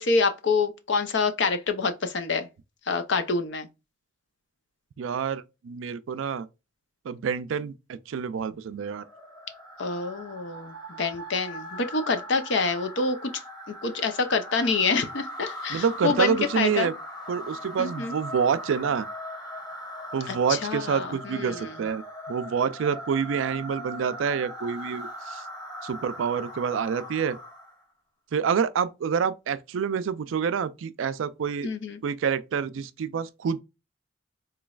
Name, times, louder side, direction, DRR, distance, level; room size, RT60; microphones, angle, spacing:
voice 1, 0.0-2.5 2.9-3.7 9.8-13.3 13.7-16.9 17.8-18.1 20.3-21.7 31.6-32.0, left 4 dB, 60° left, 0.6 m, -27 dB
voice 2, 5.0-6.5 7.0-9.0 15.7-16.9 17.3-19.1 20.1-25.4 25.8-27.4 28.3-31.7 32.0-33.6, right 6 dB, 75° right, 0.4 m, -27 dB
sound 1, 8.9-27.8, equal, 20° left, 1.1 m, -40 dB
3.8 x 3.1 x 2.3 m
head